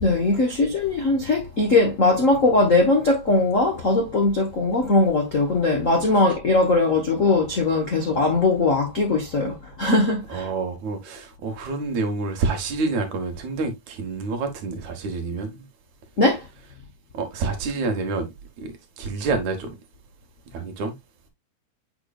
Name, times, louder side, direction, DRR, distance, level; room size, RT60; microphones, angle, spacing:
voice 1, 0.0-10.5 16.2-16.5, left 2 dB, 60° left, 0.8 m, -20 dB
voice 2, 10.3-15.7 17.1-18.3 18.6-19.8 20.5-20.9, right 4 dB, 75° right, 2.7 m, -28 dB
8.1 x 5.3 x 2.3 m
omnidirectional pair, 3.4 m